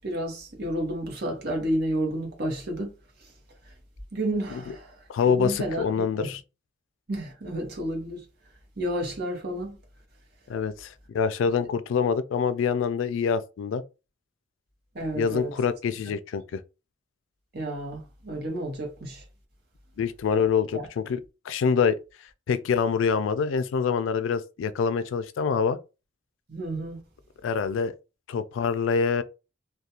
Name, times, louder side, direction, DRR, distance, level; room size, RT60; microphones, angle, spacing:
voice 1, 0.0-2.9 4.1-4.9 5.2-6.3 7.1-8.2 8.8-9.8 14.9-15.5 17.5-19.2 20.7-20.8 26.5-27.0, right 1 dB, 55° right, 0.9 m, -31 dB
voice 2, 5.1-6.4 10.5-13.8 15.1-16.6 20.0-21.2 21.5-22.0 22.5-25.8 27.4-27.9 28.3-29.2, left 6 dB, 85° left, 0.3 m, -25 dB
2.4 x 2.2 x 2.8 m
head